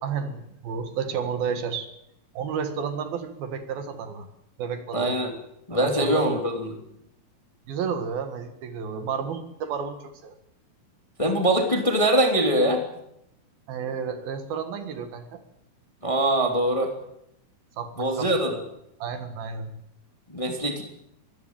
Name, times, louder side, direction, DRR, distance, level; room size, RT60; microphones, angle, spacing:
voice 1, 0.0-1.9 2.4-4.3 4.6-5.2 5.7-6.3 7.7-10.3 13.7-15.4 17.8-18.3 19.0-19.7, right 6 dB, 70° right, 8 dB, 3.5 m, -31 dB
voice 2, 4.9-5.3 5.7-6.7 11.2-12.8 16.0-16.9 18.0-18.6 20.3-20.8, right 1 dB, 10° left, 3 dB, 2.4 m, -23 dB
24.0 x 15.5 x 9.0 m, 0.81 s
omnidirectional pair, 4.5 m